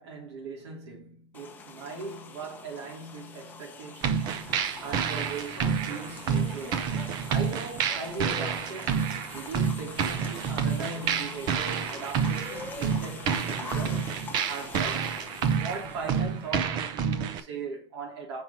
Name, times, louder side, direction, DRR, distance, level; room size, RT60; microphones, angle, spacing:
voice 1, 0.0-7.0 7.3-14.1 14.5-15.2 15.5-18.4, right 4 dB, 70° right, 3.0 m, -39 dB
sound 1, 1.3-16.5, left 5 dB, 10° left, 0.8 m, -44 dB
sound 2, 4.0-17.4, right 7 dB, 30° right, 0.7 m, -29 dB
5.6 x 4.2 x 5.6 m
supercardioid pair, 160°, 15 cm